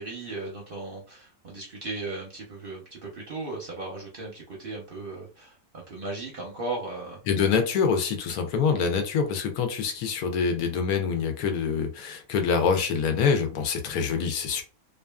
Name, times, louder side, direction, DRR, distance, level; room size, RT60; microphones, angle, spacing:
voice 1, 0.0-7.2, right 2 dB, 50° right, -1 dB, 0.7 m, -36 dB
voice 2, 7.3-14.6, left 6 dB, 80° left, 5 dB, 1.1 m, -25 dB
2.6 x 2.4 x 2.2 m, 0.33 s
omnidirectional pair, 1.6 m